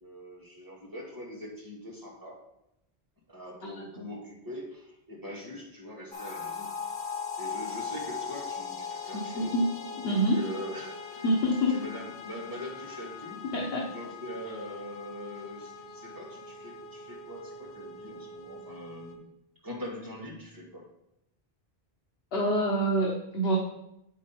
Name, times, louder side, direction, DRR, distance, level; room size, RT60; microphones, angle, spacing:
voice 1, 0.0-2.4 3.3-6.7 7.4-9.6 9.9-11.2 11.7-13.4 13.9-19.2 19.6-20.9, left 1 dB, 20° right, -4 dB, 2.0 m, -42 dB
sound 1, 6.1-19.1, left 5 dB, 65° left, 1.3 m, -40 dB
voice 2, 9.3-9.6 10.0-10.4 11.2-11.8 13.5-13.9 22.3-23.6, equal, 85° left, -2 dB, 1.3 m, -26 dB
8.0 x 5.3 x 4.4 m, 0.84 s
omnidirectional pair, 1.0 m